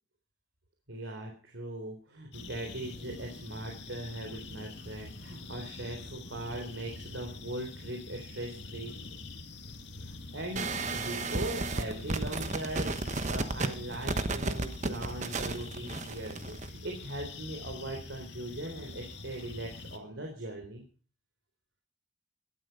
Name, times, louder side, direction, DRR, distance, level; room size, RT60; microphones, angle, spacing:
voice 1, 0.9-8.9 10.0-20.8, right 1 dB, 80° right, 2 dB, 3.8 m, -40 dB
sound 1, 2.3-20.0, left 2 dB, 65° left, 2.2 m, -45 dB
sound 2, 10.6-16.7, right 3 dB, 40° right, 1.2 m, -33 dB
17.5 x 12.0 x 5.5 m, 0.38 s
head